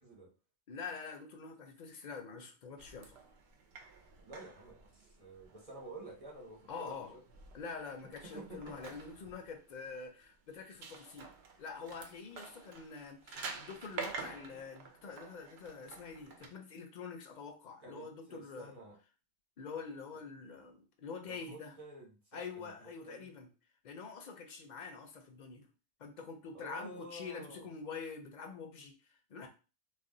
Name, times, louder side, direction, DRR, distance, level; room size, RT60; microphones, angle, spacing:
voice 1, 0.7-3.2 6.7-7.1 7.5-11.3 11.6-18.7 19.6-21.8 22.3-23.5 23.8-25.7 26.0-29.5, left 5 dB, 55° left, 4 dB, 0.6 m, -46 dB
sound 1, 2.8-16.5, right 4 dB, 85° right, 0.8 m, -49 dB
voice 2, 4.2-6.9 8.2-8.8 17.8-19.0 21.3-22.7 23.0-23.3 26.5-27.7, right 2 dB, 35° right, -1 dB, 1.0 m, -50 dB
2.4 x 2.2 x 3.7 m, 0.33 s
omnidirectional pair, 1.0 m